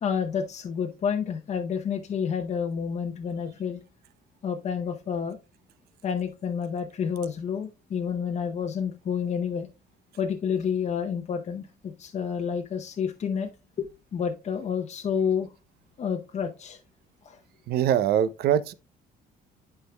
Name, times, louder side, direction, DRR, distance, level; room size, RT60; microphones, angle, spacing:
voice 1, 0.0-3.8 4.4-5.4 6.0-9.7 10.2-13.5 13.8-15.5 16.0-16.8 17.2-17.4, left 7 dB, 40° left, 0.8 m, -29 dB
voice 2, 17.7-18.7, right 10 dB, 70° right, 0.7 m, -23 dB
11.5 x 4.5 x 2.3 m
cardioid pair, 110°, 17 cm